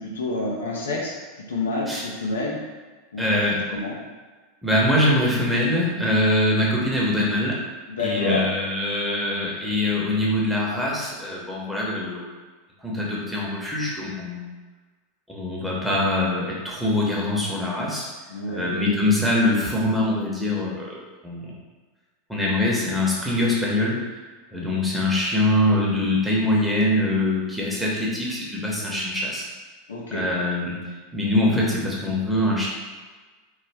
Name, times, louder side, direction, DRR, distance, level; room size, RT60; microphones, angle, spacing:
voice 1, 0.0-2.6 3.1-3.4 3.7-4.0 7.9-8.4 18.3-18.7 29.9-30.3, left 2 dB, 85° left, -3 dB, 0.6 m, -28 dB
voice 2, 3.2-3.8 4.6-7.6 8.0-12.3 12.8-14.5 15.3-18.1 18.5-21.0 21.2-21.6 22.3-24.0 24.5-29.5 30.1-30.8 31.1-32.7, left 1 dB, 5° right, -5 dB, 0.9 m, -23 dB
3.1 x 2.1 x 3.4 m, 1.3 s
hypercardioid pair, 95°, 0 cm